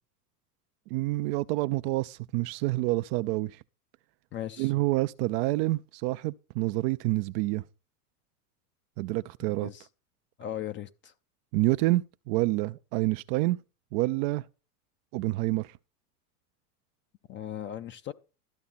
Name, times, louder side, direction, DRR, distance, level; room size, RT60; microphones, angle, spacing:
voice 1, 0.9-3.6 4.6-7.6 9.0-9.7 11.5-13.6 13.9-14.4 15.1-15.8, right 19 dB, 45° right, 0.4 m, -28 dB
voice 2, 4.3-4.7 9.5-9.9 10.4-11.1 17.3-18.1, left 11 dB, 25° left, 0.5 m, -38 dB
13.0 x 8.4 x 4.2 m
hypercardioid pair, 115°, 46 cm